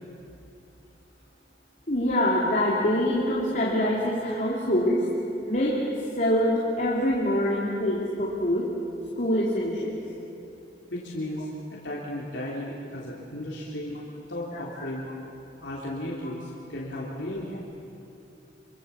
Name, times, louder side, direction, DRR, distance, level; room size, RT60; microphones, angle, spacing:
voice 1, 1.9-5.1 5.4-5.8 6.1-8.7 9.2-10.0 14.8-14.9, left 1 dB, 45° left, -4 dB, 3.2 m, -25 dB
voice 2, 10.9-14.0 14.3-15.1 15.6-17.6, left 1 dB, 80° left, -5 dB, 3.5 m, -35 dB
26.5 x 25.0 x 7.2 m, 2.7 s
head